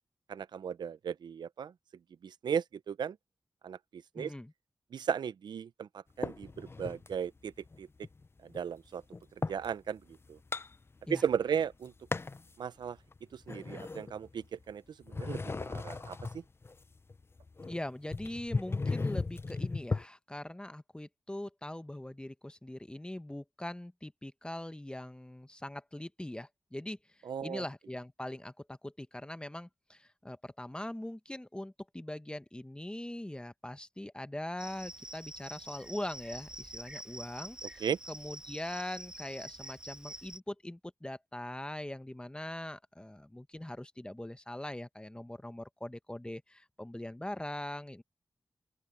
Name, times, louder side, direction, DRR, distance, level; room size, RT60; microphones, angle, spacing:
voice 1, 0.3-1.7 2.2-3.2 3.6-4.3 4.9-7.5 7.8-7.9 8.4-9.0 9.5-10.0 10.3-10.4 11.1-11.9 12.6-13.0 13.3-14.8 15.1-16.2 27.3-27.6 37.8-38.0, right 7 dB, 90° right, 0.6 m, -35 dB
voice 2, 4.1-4.5 11.1-11.2 17.7-48.0, left 1 dB, 15° left, 1.1 m, -42 dB
sound 1, 6.2-7.1 7.6-9.7 10.1-11.4 11.6-12.5 13.0-14.7 15.0-20.0, left 3 dB, 35° left, 0.5 m, -36 dB
Cricket, 34.6-40.4, right 1 dB, 10° right, 1.7 m, -47 dB
open air
cardioid pair, 50°, 7 cm